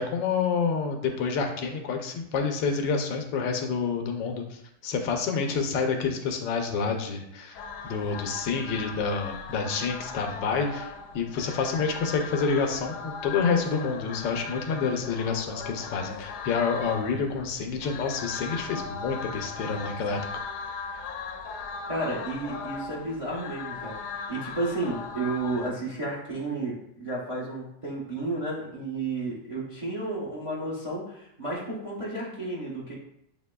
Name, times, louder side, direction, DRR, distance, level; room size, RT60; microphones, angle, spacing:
voice 1, 0.0-4.6 4.8-20.2, left 5 dB, 90° left, 4 dB, 1.3 m, -28 dB
sound 1, 7.5-25.7, left 5 dB, 70° left, 1.0 m, -38 dB
voice 2, 21.9-33.0, right 2 dB, 30° right, -5 dB, 0.6 m, -32 dB
7.2 x 2.8 x 2.2 m, 0.77 s
omnidirectional pair, 1.9 m